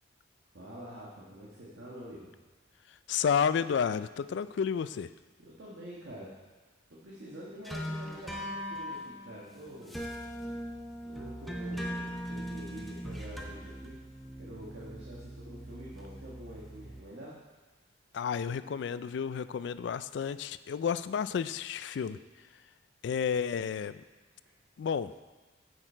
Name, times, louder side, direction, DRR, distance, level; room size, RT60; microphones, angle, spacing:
voice 1, 0.5-2.3 5.4-6.3 6.6-10.0 10.6-10.7 11.0-14.0 14.4-17.4, right 1 dB, 75° right, -6 dB, 1.5 m, -46 dB
voice 2, 3.1-5.1 18.1-22.2 23.0-24.0 24.8-25.1, left 7 dB, 70° left, 15 dB, 0.3 m, -31 dB
sound 1, 7.6-17.0, equal, ahead, 0.7 m, -40 dB
8.6 x 6.4 x 4.4 m, 1.2 s
head